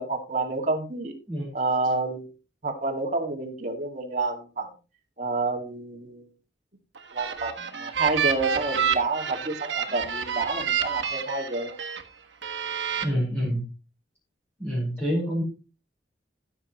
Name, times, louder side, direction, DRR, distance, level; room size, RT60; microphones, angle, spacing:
voice 1, 0.0-1.1 1.5-2.3 2.6-4.7 5.2-6.3 7.1-11.7, right 3 dB, 40° right, 2 dB, 2.2 m, -29 dB
sound 1, 6.9-12.0 12.4-13.0, right 7 dB, 80° right, 1.5 m, -28 dB
voice 2, 13.0-13.6 14.6-15.4, equal, 10° left, -9 dB, 4.9 m, -27 dB
15.0 x 7.5 x 3.1 m, 0.31 s
head